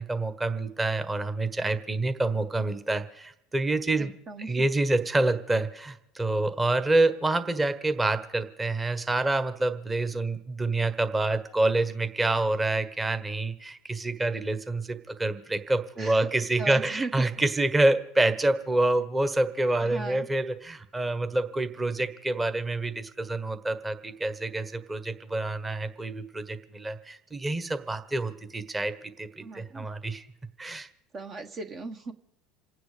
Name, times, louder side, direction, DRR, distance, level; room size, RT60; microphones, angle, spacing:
voice 1, 0.0-4.1 4.5-30.3 30.6-30.9, right 2 dB, 15° right, 10 dB, 1.4 m, -27 dB
voice 2, 4.0-4.6 16.0-16.3 16.6-17.1 19.8-20.3 29.4-29.9 31.1-32.1, right 3 dB, 40° right, 6 dB, 1.3 m, -37 dB
28.0 x 9.4 x 5.1 m, 0.86 s
hypercardioid pair, 80°, 0 cm